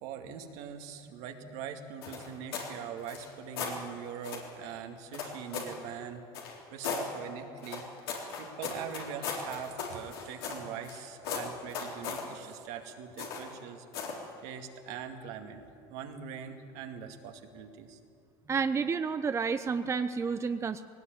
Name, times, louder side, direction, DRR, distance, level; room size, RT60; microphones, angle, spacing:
voice 1, 0.0-7.8 8.4-13.9 14.4-15.6 15.9-18.0, right 8 dB, 70° right, 4 dB, 2.3 m, -42 dB
sound 1, 2.0-2.7 3.0-3.8 4.2-4.5 5.1-5.8 6.3-7.1 7.6-11.0 11.2-12.3 13.2-13.5 13.9-14.2, left 6 dB, 90° left, 3.9 m, -37 dB
voice 2, 18.5-20.8, right 5 dB, 25° right, 9 dB, 0.8 m, -30 dB
19.5 x 18.5 x 9.4 m, 2.4 s
supercardioid pair, 95°, 12 cm